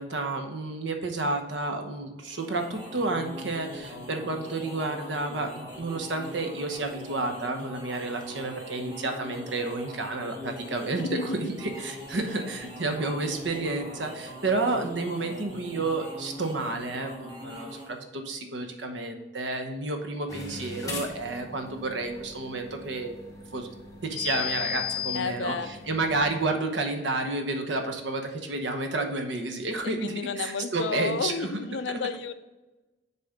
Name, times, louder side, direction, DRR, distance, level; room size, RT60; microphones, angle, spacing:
voice 1, 0.0-23.1 23.5-23.7 24.0-31.6 31.9-32.0, right 2 dB, 70° right, 5 dB, 1.0 m, -31 dB
sound 1, 2.2-18.0, left 1 dB, 25° right, 1.7 m, -42 dB
voice 2, 11.0-11.4 25.1-25.7 29.8-32.3, left 5 dB, 70° left, 11 dB, 0.5 m, -31 dB
sound 2, 20.3-26.4, left 7 dB, 20° left, 1.2 m, -37 dB
7.0 x 4.2 x 5.1 m, 1.1 s
head